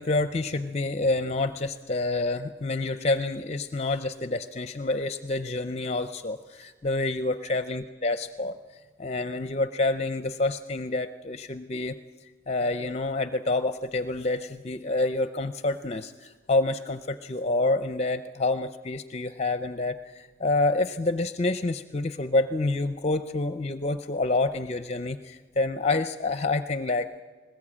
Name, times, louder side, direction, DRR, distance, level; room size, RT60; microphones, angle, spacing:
voice 1, 0.0-27.2, left 2 dB, 30° left, 11 dB, 0.5 m, -28 dB
21.0 x 19.5 x 8.6 m, 1.5 s
head